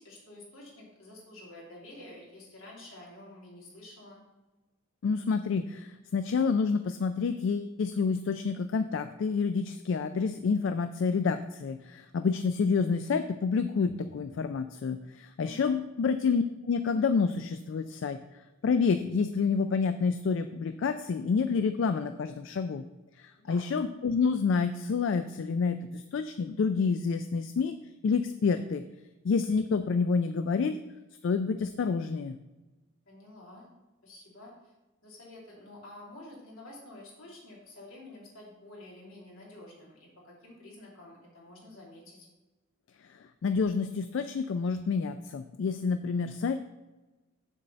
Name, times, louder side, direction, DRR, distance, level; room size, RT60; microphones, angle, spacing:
voice 1, 0.0-4.2 15.4-15.7 23.4-23.7 33.1-33.7 34.0-34.7 35.0-42.3, left 1 dB, 80° left, -4 dB, 2.8 m, -49 dB
voice 2, 5.0-18.2 18.6-22.8 23.2-27.8 28.0-28.8 29.2-30.8 31.2-32.4 43.1-46.6, left 5 dB, 60° left, 9 dB, 0.3 m, -28 dB
7.2 x 4.0 x 6.6 m, 1.1 s
head